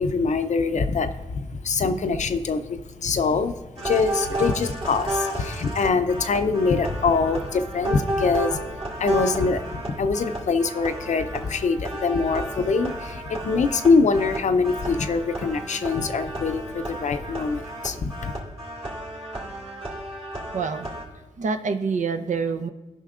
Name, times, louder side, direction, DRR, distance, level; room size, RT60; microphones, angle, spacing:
voice 1, 0.0-3.5 3.8-8.6 9.0-18.3, left 4 dB, 60° left, 9 dB, 0.6 m, -24 dB
sound 1, 3.8-21.0, right 1 dB, 45° right, 2.2 m, -33 dB
voice 2, 20.5-20.9 21.4-22.7, right 5 dB, 65° right, 8 dB, 0.7 m, -26 dB
17.0 x 5.6 x 2.5 m, 1.2 s
cardioid pair, 75°, 14 cm